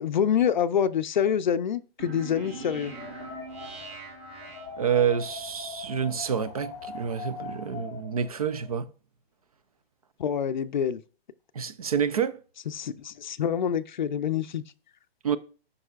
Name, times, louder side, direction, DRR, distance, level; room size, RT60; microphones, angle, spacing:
voice 1, 0.0-2.9 10.2-11.0 12.7-14.6, left 8 dB, 50° left, 0.5 m, -26 dB
sound 1, 2.0-5.3, right 3 dB, 15° right, 1.2 m, -42 dB
Wind, 2.8-8.8, left 5 dB, 15° left, 0.8 m, -42 dB
voice 2, 4.8-8.9 11.5-12.4 15.2-15.4, right 8 dB, 40° right, 0.5 m, -28 dB
12.5 x 5.4 x 2.4 m
hypercardioid pair, 170°, 31 cm